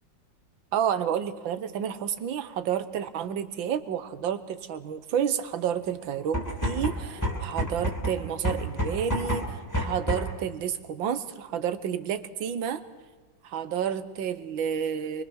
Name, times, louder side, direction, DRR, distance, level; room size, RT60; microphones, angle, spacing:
voice 1, 0.7-12.8 13.4-15.2, right 8 dB, 90° right, 12 dB, 1.8 m, -30 dB
sound 1, 6.2-10.4, equal, 10° left, 2.5 m, -29 dB
24.0 x 23.5 x 6.3 m, 1.3 s
omnidirectional pair, 2.0 m